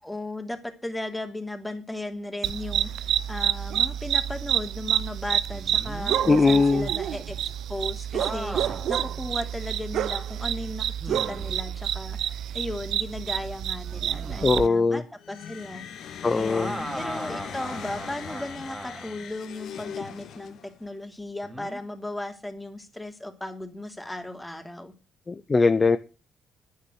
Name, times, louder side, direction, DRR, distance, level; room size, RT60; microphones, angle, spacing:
voice 1, 0.0-7.4 7.7-15.0 15.3-16.0 16.3-24.9, left 1 dB, 10° left, 2.9 m, -36 dB
sound 1, 2.4-14.7, right 10 dB, 75° right, 0.6 m, -28 dB
sound 2, 5.5-6.2 8.2-9.0 9.6-9.7 11.0-11.6 13.9-14.6 16.3-19.2 21.4-21.8, right 1 dB, 10° right, 2.9 m, -38 dB
voice 2, 6.3-6.9 14.4-15.0 16.2-16.8 25.3-26.0, left 4 dB, 30° left, 0.9 m, -20 dB
sound 3, 15.2-20.9, left 8 dB, 75° left, 2.0 m, -40 dB
10.5 x 9.5 x 6.3 m
cardioid pair, 90°, 0 cm